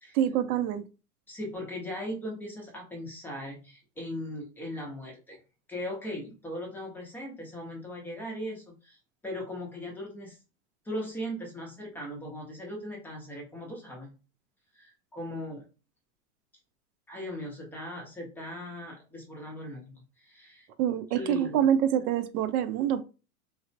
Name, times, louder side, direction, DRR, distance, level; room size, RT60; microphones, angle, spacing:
voice 1, 0.1-0.8 20.8-23.0, right 10 dB, 80° right, 0.6 m, -26 dB
voice 2, 1.3-5.4 5.7-10.4 10.9-14.2 14.7-15.6 17.1-20.7 21.1-21.6, left 1 dB, 5° left, 0.4 m, -39 dB
3.2 x 2.0 x 2.5 m
supercardioid pair, 130°, 44 cm